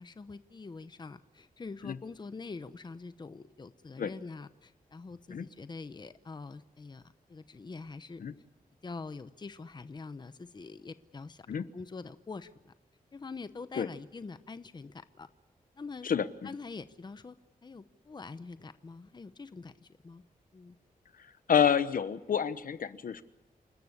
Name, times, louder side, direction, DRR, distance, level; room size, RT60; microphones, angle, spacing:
voice 1, 0.0-8.2 8.8-12.7 13.1-15.3 15.8-16.1 16.4-17.4 17.6-20.2 20.5-20.8, left 4 dB, 30° left, 12 dB, 0.8 m, -45 dB
voice 2, 21.5-23.2, left 8 dB, 70° left, 14 dB, 1.0 m, -28 dB
28.5 x 13.5 x 9.8 m, 1.0 s
wide cardioid pair, 135°, 15 cm